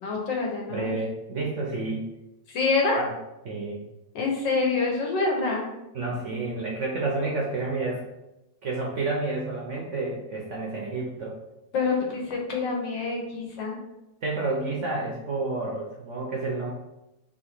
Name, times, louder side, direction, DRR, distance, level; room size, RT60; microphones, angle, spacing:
voice 1, 0.0-1.0 2.5-3.1 4.1-5.7 11.7-13.8, left 3 dB, 80° left, 0 dB, 1.7 m, -26 dB
voice 2, 0.7-2.1 3.0-3.1 3.4-3.8 5.9-8.0 8.6-11.3 14.2-16.7, right 3 dB, 60° right, -3 dB, 0.8 m, -30 dB
3.7 x 2.8 x 4.3 m, 0.94 s
omnidirectional pair, 1.9 m